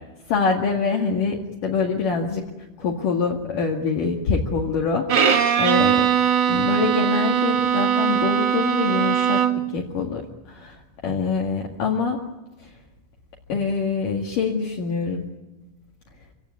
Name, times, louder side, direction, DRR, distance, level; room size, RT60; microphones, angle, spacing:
voice 1, 0.3-2.5 2.8-9.4 9.7-12.2 12.6-12.7 13.5-15.3, left 5 dB, 60° left, -1 dB, 3.4 m, -25 dB
Bowed string instrument, 5.1-9.8, right 8 dB, 85° right, 1.0 m, -20 dB
26.5 x 16.5 x 9.5 m, 1.0 s
omnidirectional pair, 4.6 m